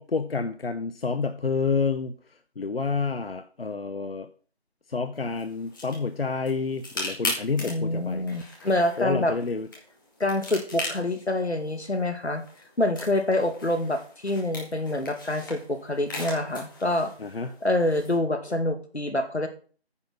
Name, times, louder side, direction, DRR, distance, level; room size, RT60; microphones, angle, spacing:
voice 1, 0.0-4.3 4.9-8.3 9.0-9.7 17.2-17.5, left 4 dB, 60° left, 9 dB, 0.9 m, -29 dB
sound 1, 5.1-18.2, left 2 dB, 20° left, 2.3 m, -39 dB
voice 2, 7.7-9.3 10.2-12.4 12.8-17.1 17.6-19.5, left 1 dB, 85° left, 8 dB, 2.2 m, -26 dB
9.7 x 6.0 x 6.1 m, 0.41 s
figure-of-eight pair, 165°, 32 cm